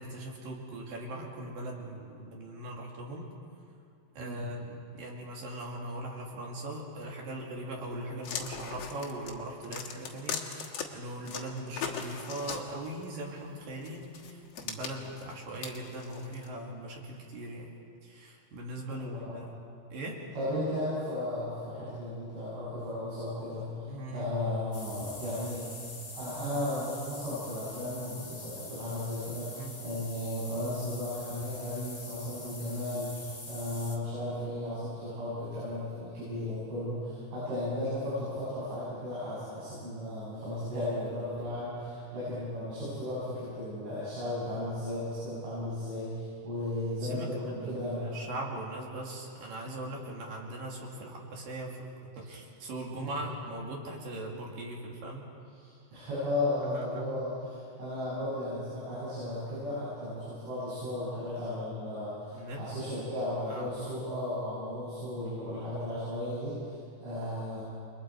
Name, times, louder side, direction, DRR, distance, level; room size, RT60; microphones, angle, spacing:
voice 1, 0.0-3.3 4.2-17.7 18.0-19.4 19.9-20.2 23.9-24.3 29.6-29.8 47.0-55.2 56.6-57.2 62.3-62.6 63.5-64.0, right 1 dB, 55° right, -1 dB, 3.8 m, -40 dB
sound 1, 8.2-10.8 11.3-13.0 13.8-16.5, left 6 dB, 70° left, 1.5 m, -39 dB
voice 2, 19.0-19.4 20.4-48.1 53.0-53.1 55.6-67.6, left 1 dB, 90° right, -10 dB, 9.5 m, -35 dB
sound 2, 24.7-34.0, left 2 dB, 55° left, 0.4 m, -45 dB
29.5 x 23.5 x 4.7 m, 2.5 s
omnidirectional pair, 5.4 m